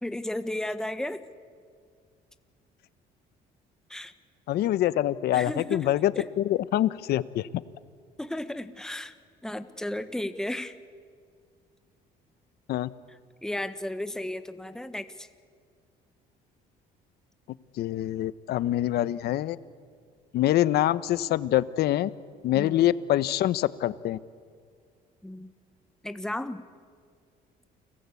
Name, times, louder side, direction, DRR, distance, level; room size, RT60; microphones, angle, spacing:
voice 1, 0.0-1.2 3.9-4.1 5.3-5.9 6.1-6.3 8.2-9.1 9.4-10.8 13.4-15.3 22.5-22.9 25.2-25.5 26.0-26.6, left 1 dB, 5° left, 10 dB, 1.3 m, -34 dB
voice 2, 4.5-7.5 12.7-12.9 17.8-19.6 20.3-22.1 22.4-24.2, left 13 dB, 70° left, 16 dB, 0.9 m, -25 dB
30.0 x 20.0 x 8.4 m, 2.1 s
cardioid pair, 110°, 17 cm